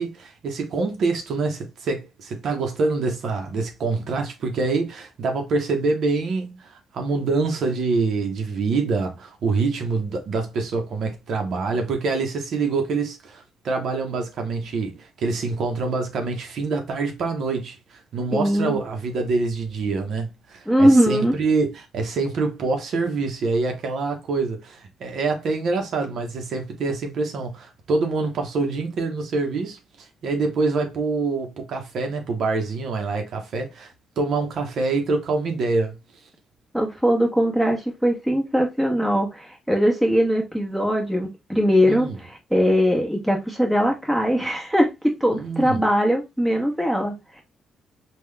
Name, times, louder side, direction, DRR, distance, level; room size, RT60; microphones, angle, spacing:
voice 1, 0.0-36.0 41.8-42.2 45.3-45.8, right 3 dB, 65° right, 0.8 m, -25 dB
voice 2, 18.3-18.8 20.7-21.3 36.7-47.4, equal, 5° right, 1.3 m, -21 dB
3.7 x 2.3 x 3.2 m
cardioid pair, 90°, 0 cm